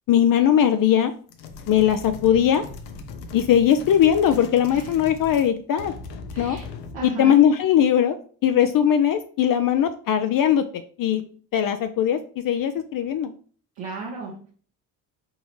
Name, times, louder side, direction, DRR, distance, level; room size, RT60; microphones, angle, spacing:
voice 1, 0.1-1.1 1.7-2.6 3.3-5.9 6.4-6.6 7.0-8.2 8.4-11.2 11.5-13.3, left 9 dB, 45° left, 8 dB, 0.5 m, -20 dB
sound 1, 1.3-5.5 5.8-7.1, left 4 dB, 85° left, 0.7 m, -39 dB
voice 2, 6.3-6.7 6.9-7.4 13.7-14.5, right 3 dB, 65° right, -3 dB, 1.1 m, -34 dB
4.0 x 3.6 x 3.0 m, 0.43 s
hypercardioid pair, 60°, 47 cm